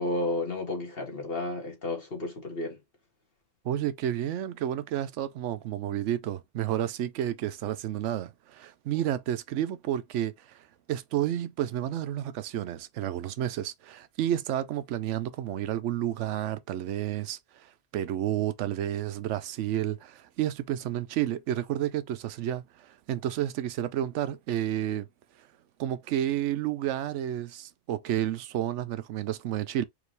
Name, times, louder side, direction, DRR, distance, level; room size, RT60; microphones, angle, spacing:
voice 1, 0.0-2.8, left 2 dB, 50° left, 1.7 m, -32 dB
voice 2, 3.6-10.6 10.9-17.4 17.9-25.1 25.8-29.8, right 11 dB, 70° right, 0.9 m, -31 dB
4.8 x 2.8 x 3.2 m
omnidirectional pair, 1.3 m